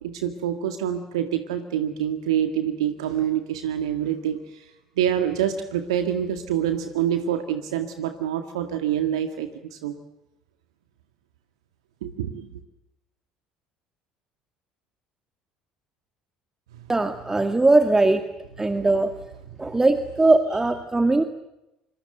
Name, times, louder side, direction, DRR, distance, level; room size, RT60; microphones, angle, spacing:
voice 1, 0.0-4.7 5.0-10.0 12.0-12.6, right 10 dB, 75° right, 7 dB, 1.9 m, -26 dB
voice 2, 16.9-18.2 18.6-19.1 19.6-21.2, right 2 dB, 15° right, 7 dB, 2.0 m, -20 dB
26.0 x 24.5 x 8.0 m, 0.91 s
figure-of-eight pair, 60°, 3 cm